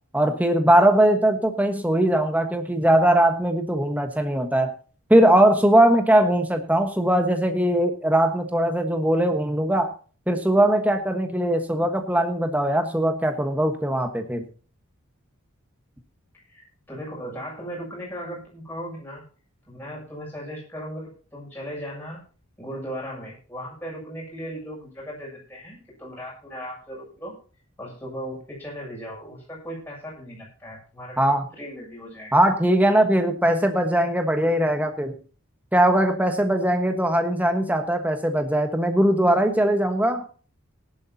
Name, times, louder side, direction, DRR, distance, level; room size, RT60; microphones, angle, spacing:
voice 1, 0.1-4.7 5.1-9.9 10.3-14.4 31.2-31.4 32.3-35.2 35.7-40.2, right 1 dB, 5° right, 6 dB, 1.3 m, -20 dB
voice 2, 16.5-19.2 19.7-22.2 22.6-27.3 27.8-32.3, equal, 10° left, -3 dB, 7.3 m, -37 dB
19.0 x 11.0 x 2.8 m, 0.39 s
head